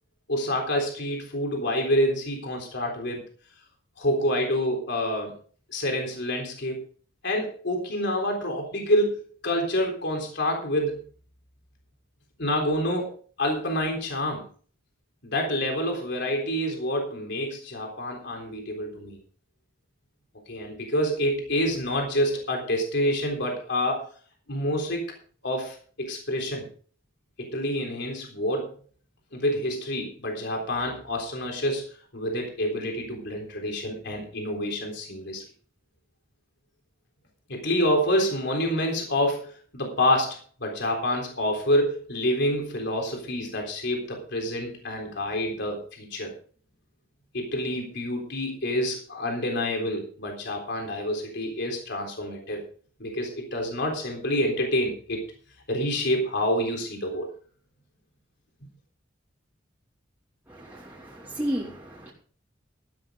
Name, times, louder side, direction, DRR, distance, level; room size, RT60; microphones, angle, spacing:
voice 1, 0.3-3.2 4.0-5.3 5.7-6.8 7.2-11.0 12.4-13.1 13.4-14.4 15.2-19.2 20.5-24.1 24.5-25.0 25.4-26.7 27.4-28.7 29.3-31.9 32.1-35.4 37.5-46.3 47.3-52.6 53.0-55.2 55.7-57.3, left 1 dB, 60° left, 3.8 m, -27 dB
voice 2, 60.5-62.1, equal, 10° right, 2.7 m, -33 dB
13.5 x 12.5 x 3.9 m
head